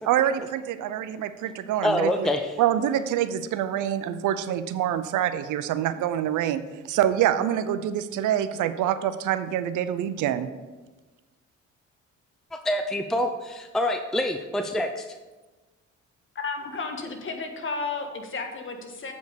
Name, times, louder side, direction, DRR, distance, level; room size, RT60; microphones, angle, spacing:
voice 1, 0.0-2.3 2.6-6.6 6.9-10.5, right 11 dB, 80° right, 12 dB, 0.6 m, -26 dB
voice 2, 1.8-2.6 12.5-15.1, left 1 dB, ahead, 6 dB, 0.5 m, -26 dB
voice 3, 16.3-19.1, left 4 dB, 40° left, 3 dB, 1.4 m, -33 dB
7.9 x 5.3 x 5.1 m, 1.2 s
cardioid pair, 90°, 30 cm